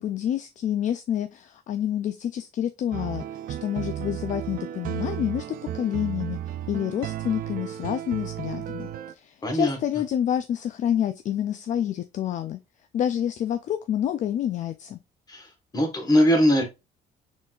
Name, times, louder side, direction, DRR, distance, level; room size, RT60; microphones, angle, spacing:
voice 1, 0.0-3.2 3.6-5.4 5.7-6.4 6.7-12.6 12.9-15.0, left 10 dB, 50° left, 0.4 m, -28 dB
sound 1, 2.9-9.1, right 11 dB, 60° right, 0.4 m, -34 dB
voice 2, 9.4-9.8 15.3-15.5 15.7-16.6, equal, 20° left, 1.4 m, -21 dB
4.1 x 3.9 x 2.4 m
cardioid pair, 110°, 17 cm